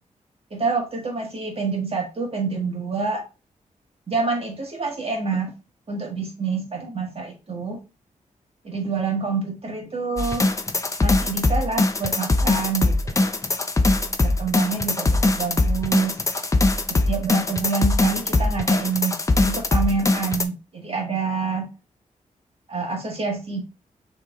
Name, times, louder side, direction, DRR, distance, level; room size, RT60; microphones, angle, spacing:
voice 1, 0.5-3.2 4.1-5.5 5.9-7.8 8.6-10.5 11.0-13.2 14.2-16.2 16.9-21.7 22.7-23.6, right 4 dB, 45° right, 1.5 m, -27 dB
sound 1, 10.2-20.4, left 2 dB, 25° left, 0.5 m, -21 dB
6.3 x 3.3 x 2.4 m
wide cardioid pair, 90°, 14 cm